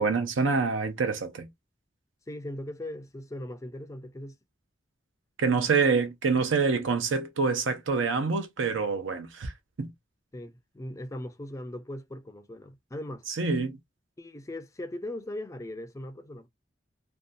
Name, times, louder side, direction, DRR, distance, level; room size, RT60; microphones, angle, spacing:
voice 1, 0.0-1.5 5.4-9.5 9.8-9.9 13.3-13.8, right 4 dB, 80° right, 0.6 m, -26 dB
voice 2, 2.3-4.4 10.3-13.3 14.2-16.5, left 1 dB, 15° left, 0.4 m, -39 dB
2.6 x 2.2 x 2.5 m
head